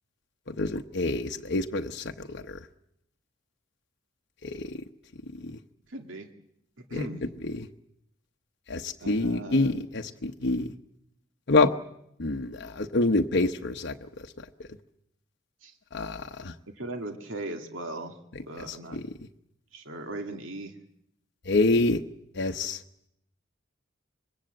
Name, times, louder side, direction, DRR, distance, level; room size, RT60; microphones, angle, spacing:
voice 1, 0.5-2.6 4.4-4.8 5.4-5.5 6.9-7.0 7.4-7.7 8.7-10.7 11.5-11.7 12.2-13.9 15.9-16.5 18.6-19.1 21.5-22.0 22.4-22.8, left 2 dB, 60° left, 4 dB, 1.0 m, -27 dB
voice 2, 5.9-6.3 6.9-7.2 9.0-9.8 15.6-15.7 16.8-18.1 18.5-19.0 19.7-20.7, right 2 dB, 85° right, 5 dB, 2.1 m, -37 dB
25.5 x 21.5 x 7.9 m, 0.78 s
head